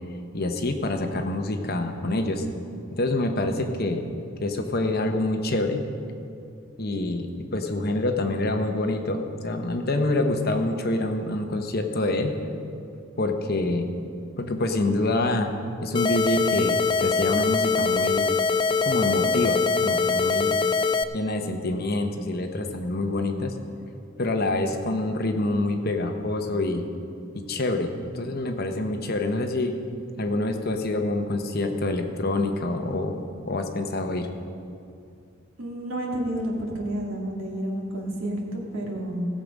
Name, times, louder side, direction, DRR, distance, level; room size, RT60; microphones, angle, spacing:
voice 1, 0.3-2.4 2.9-4.0 4.4-5.8 6.8-12.4 13.2-13.9 14.4-15.5 15.8-18.3 18.8-20.6 21.1-23.5 24.2-26.8 27.3-29.8 30.2-33.1 33.5-34.3, left 2 dB, 50° left, 5 dB, 0.9 m, -26 dB
sound 1, 15.9-21.0, left 4 dB, 25° left, 0.3 m, -23 dB
voice 2, 35.6-39.3, right 1 dB, 80° right, -2 dB, 2.3 m, -30 dB
17.0 x 7.4 x 5.2 m, 2.5 s
head